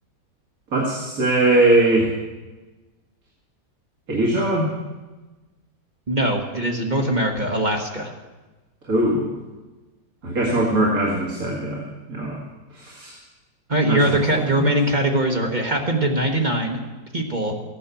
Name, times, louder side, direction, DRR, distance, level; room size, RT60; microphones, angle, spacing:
voice 1, 0.7-2.1 4.1-4.7 8.9-9.3 10.2-11.8 12.1-12.4 12.7-13.1 13.9-14.7, right 1 dB, 55° right, -3 dB, 2.6 m, -21 dB
voice 2, 6.1-8.1 13.7-16.8 17.1-17.5, right 1 dB, 30° right, 2 dB, 1.4 m, -21 dB
15.5 x 9.9 x 7.0 m, 1.2 s
omnidirectional pair, 1.8 m